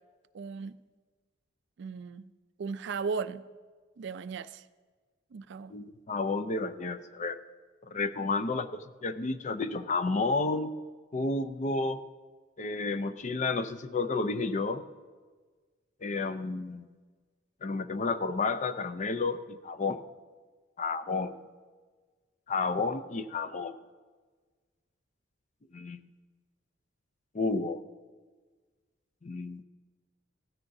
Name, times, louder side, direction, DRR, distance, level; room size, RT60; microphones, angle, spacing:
voice 1, 0.3-0.8 1.8-2.3 2.6-3.4 4.0-4.6 5.3-5.7, right 5 dB, 60° right, 14 dB, 0.4 m, -36 dB
voice 2, 5.7-7.4 7.9-10.7 11.1-12.0 12.6-14.8 16.0-16.9 17.6-20.0 20.8-21.4 22.5-23.8 25.7-26.1 27.3-27.8 29.2-29.6, left 3 dB, 35° left, 12 dB, 0.5 m, -31 dB
16.0 x 13.5 x 2.7 m, 1.4 s
head